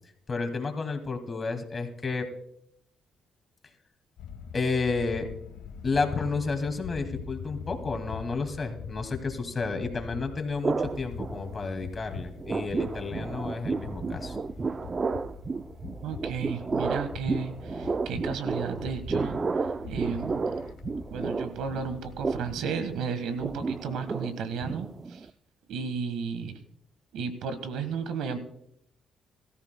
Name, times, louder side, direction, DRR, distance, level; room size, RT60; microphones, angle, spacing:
voice 1, 0.3-2.3 4.5-5.3 5.8-14.4, left 4 dB, 35° left, 6 dB, 2.2 m, -31 dB
sound 1, 4.2-22.6, left 6 dB, 80° left, 1.3 m, -43 dB
sound 2, 10.6-11.9 12.1-25.3, right 4 dB, 35° right, 0.4 m, -32 dB
voice 2, 16.0-20.5 21.1-25.3 25.7-26.6 27.1-28.4, right 6 dB, 85° right, 10 dB, 1.4 m, -34 dB
21.5 x 14.0 x 2.2 m, 0.72 s
cardioid pair, 90°, 0 cm